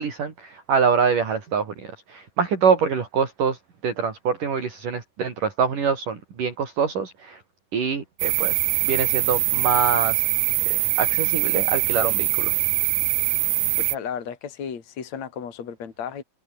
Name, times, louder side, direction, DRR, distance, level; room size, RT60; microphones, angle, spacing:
voice 1, 0.0-3.6 3.8-7.4 7.7-8.5 8.8-10.2 10.7-12.5, right 6 dB, 60° right, 5.4 m, -24 dB
sound 1, 8.2-14.0, right 19 dB, 90° right, 1.8 m, -23 dB
voice 2, 13.8-16.2, left 7 dB, 45° left, 4.1 m, -34 dB
open air
omnidirectional pair, 4.4 m